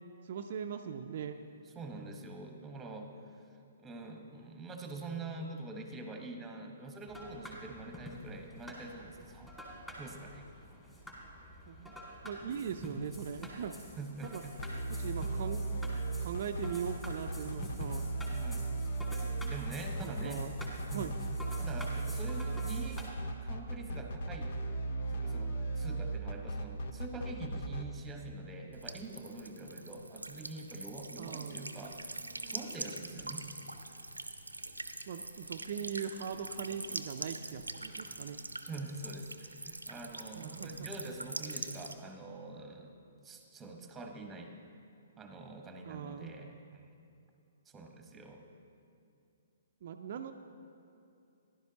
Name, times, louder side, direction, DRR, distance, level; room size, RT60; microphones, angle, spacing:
voice 1, 0.2-1.4 11.7-11.9 12.2-13.7 14.2-14.4 14.8-15.6 16.2-18.0 20.0-20.5 20.9-21.1 31.2-31.8 35.1-38.4 40.3-41.1 45.8-46.5 49.8-50.3, right 7 dB, 50° right, 4 dB, 0.5 m, -40 dB
voice 2, 1.6-3.2 3.8-9.5 10.0-10.4 14.0-14.5 18.3-18.7 19.3-20.4 20.9-21.2 21.6-23.0 23.4-24.5 25.1-32.1 32.5-33.4 38.7-42.9 43.2-44.5 45.2-46.8 47.7-48.4, right 2 dB, 10° right, 3 dB, 1.2 m, -45 dB
sound 1, 7.1-23.1, equal, 10° left, 2.4 m, -48 dB
sound 2, 14.6-27.8, right 2 dB, 55° left, 0.8 m, -36 dB
Buzz / Water tap faucet / Trickle dribble, 28.7-41.9, right 2 dB, 90° right, 0.6 m, -44 dB
16.0 x 11.0 x 2.9 m, 2.6 s
figure-of-eight pair, 125°, 0 cm